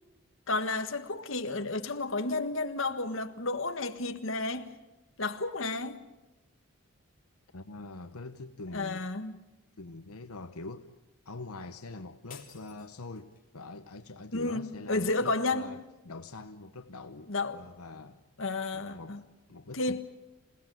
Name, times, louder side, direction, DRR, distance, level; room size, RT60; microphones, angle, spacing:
voice 1, 0.5-4.7 5.2-6.0 8.7-9.3 14.3-15.8 17.3-17.6 18.4-19.2 19.7-20.0, left 3 dB, 65° left, 1.5 m, -32 dB
voice 2, 7.5-9.1 9.8-10.9 11.2-18.2 18.7-19.2 19.5-20.0, left 3 dB, 90° left, 1.1 m, -44 dB
sound 1, 12.3-13.6, left 8 dB, 40° left, 3.4 m, -52 dB
27.5 x 18.0 x 9.2 m
head